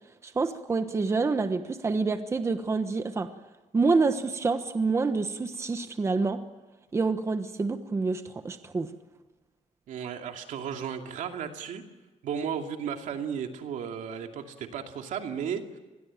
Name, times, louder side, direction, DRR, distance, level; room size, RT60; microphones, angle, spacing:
voice 1, 0.2-3.3 3.7-6.4 6.9-8.9, right 4 dB, 20° right, 8 dB, 1.2 m, -27 dB
voice 2, 9.9-11.8 12.2-15.8, right 7 dB, 75° right, 4 dB, 2.7 m, -34 dB
27.5 x 21.0 x 9.1 m, 1.2 s
cardioid pair, 165°, 13 cm